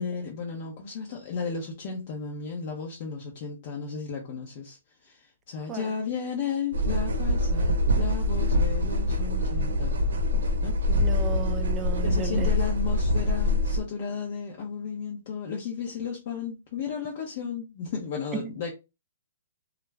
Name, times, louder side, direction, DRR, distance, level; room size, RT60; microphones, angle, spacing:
voice 1, 0.0-10.0 10.6-10.8 12.0-18.7, left 6 dB, 45° left, 0.7 m, -34 dB
sound 1, 6.7-13.8, left 1 dB, 80° right, 0.6 m, -25 dB
voice 2, 10.9-12.5 18.3-18.7, right 8 dB, 15° right, 0.3 m, -35 dB
2.4 x 2.1 x 3.3 m
hypercardioid pair, 155°, 0 cm